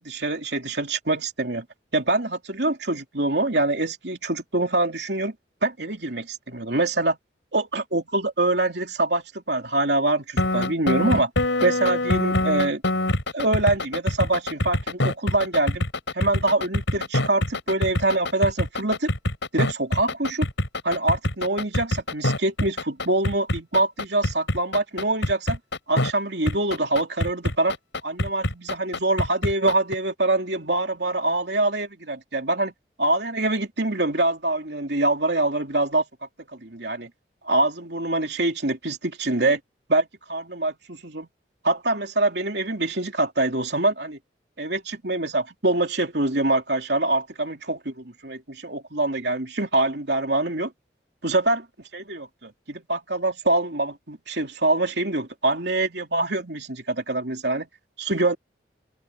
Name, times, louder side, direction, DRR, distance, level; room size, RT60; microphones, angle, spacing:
voice 1, 0.0-1.6 1.9-5.3 5.6-7.2 7.5-11.3 11.6-12.8 13.3-15.8 16.1-19.1 19.5-20.5 20.8-25.6 25.9-27.7 28.0-32.7 33.0-36.0 36.5-37.1 37.4-39.6 39.9-41.3 41.6-44.2 44.6-50.7 51.2-51.7 51.9-57.7 58.0-58.4, right 2 dB, 65° right, 3.0 m, -24 dB
sound 1, 10.4-26.1 26.5-29.9, left 1 dB, 85° left, 5.4 m, -24 dB
open air
head